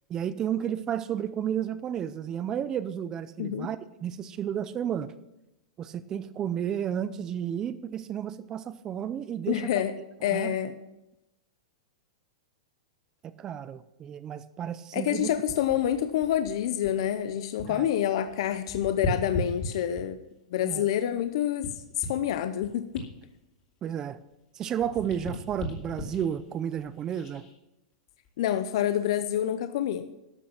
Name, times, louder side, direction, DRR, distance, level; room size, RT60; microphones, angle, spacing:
voice 1, 0.1-5.1 5.8-9.7 10.3-10.5 13.2-15.3 17.7-17.9 20.6-20.8 23.8-24.2 24.6-27.5, right 9 dB, 15° right, 14 dB, 0.5 m, -32 dB
voice 2, 9.5-9.9 10.2-10.8 14.9-20.2 20.5-21.7 22.0-23.0 28.4-30.1, left 11 dB, 50° left, 10 dB, 0.7 m, -27 dB
sound 1, 15.2-17.9 18.2-20.3 20.9-24.4 24.7-27.5 28.1-28.3, left 1 dB, 25° left, 2.6 m, -38 dB
12.5 x 7.8 x 5.9 m, 0.94 s
supercardioid pair, 175°, 4 cm